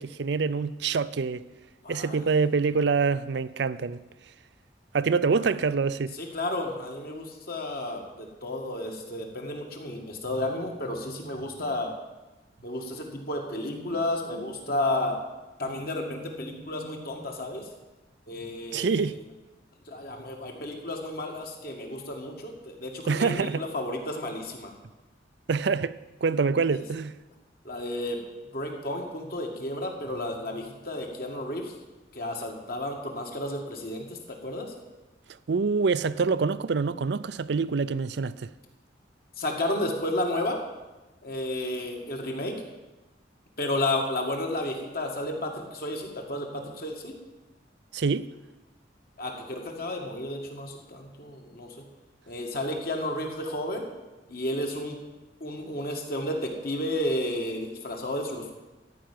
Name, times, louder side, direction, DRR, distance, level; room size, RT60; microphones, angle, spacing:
voice 1, 0.0-1.4 1.9-4.0 4.9-6.1 18.7-19.2 23.1-23.6 25.5-27.2 35.5-38.5 47.9-48.3, right 5 dB, 65° right, 0.5 m, -26 dB
voice 2, 1.8-2.2 6.2-11.9 12.6-15.2 15.6-17.6 18.3-19.2 19.9-24.7 26.7-26.8 27.6-28.2 28.5-31.7 32.1-34.7 39.4-40.6 41.2-42.6 43.6-47.1 49.2-51.8 52.3-53.9 54.3-55.0 55.4-58.5, left 1 dB, 50° left, 2.1 m, -32 dB
13.5 x 5.8 x 9.2 m
head